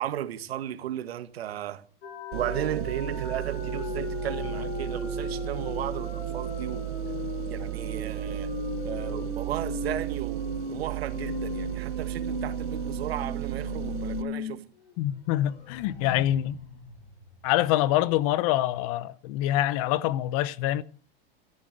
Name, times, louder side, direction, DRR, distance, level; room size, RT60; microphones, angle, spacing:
voice 1, 0.0-1.8 2.3-6.8 7.5-8.5 8.8-14.6, right 11 dB, 85° right, 1.7 m, -35 dB
sound 1, 2.0-14.5 14.8-14.9 15.3-18.0, left 2 dB, 85° left, 7.9 m, -37 dB
sound 2, 2.3-14.2, right 21 dB, 55° right, 1.0 m, -35 dB
voice 2, 15.0-16.6 17.4-20.8, left 13 dB, 35° left, 0.6 m, -25 dB
13.5 x 11.0 x 6.6 m
supercardioid pair, 160°, 30 cm